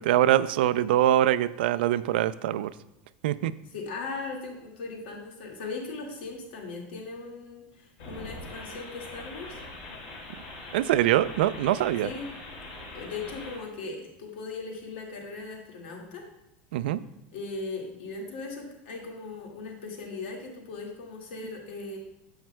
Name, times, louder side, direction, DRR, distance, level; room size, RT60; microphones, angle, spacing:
voice 1, 0.0-2.7 3.2-3.5 10.7-12.1 16.7-17.0, right 13 dB, 85° right, 15 dB, 0.3 m, -23 dB
voice 2, 3.7-9.6 12.0-12.3 12.9-16.3 17.3-22.0, left 3 dB, 90° left, 0 dB, 1.9 m, -38 dB
sound 1, 8.0-13.6, left 2 dB, 55° left, 2.4 m, -42 dB
10.5 x 7.2 x 2.2 m, 0.89 s
supercardioid pair, 180°, 5 cm